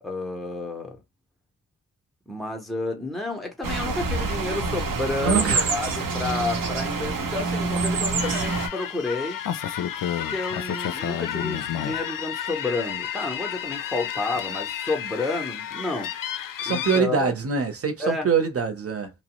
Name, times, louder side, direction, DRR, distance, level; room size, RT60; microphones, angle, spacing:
voice 1, 0.0-1.0 2.3-9.4 10.2-16.1 16.7-17.3 18.0-18.3, left 3 dB, ahead, 0.6 m, -30 dB
sound 1, 3.6-8.7, right 3 dB, 90° right, 0.8 m, -26 dB
voice 2, 5.2-5.7 16.6-19.1, right 6 dB, 45° right, 0.8 m, -24 dB
sound 2, 8.2-17.0, left 9 dB, 75° left, 0.5 m, -31 dB
2.9 x 2.0 x 2.9 m
wide cardioid pair, 175°, 33 cm